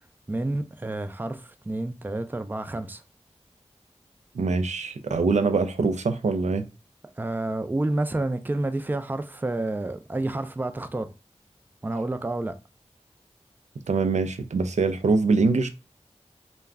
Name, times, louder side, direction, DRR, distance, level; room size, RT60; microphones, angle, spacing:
voice 1, 0.3-3.0 7.2-11.1 11.8-12.6, right 2 dB, 15° right, 0.3 m, -29 dB
voice 2, 4.3-6.7 13.9-15.7, right 4 dB, 85° right, 0.4 m, -23 dB
2.3 x 2.1 x 3.4 m
wide cardioid pair, 45°, 12 cm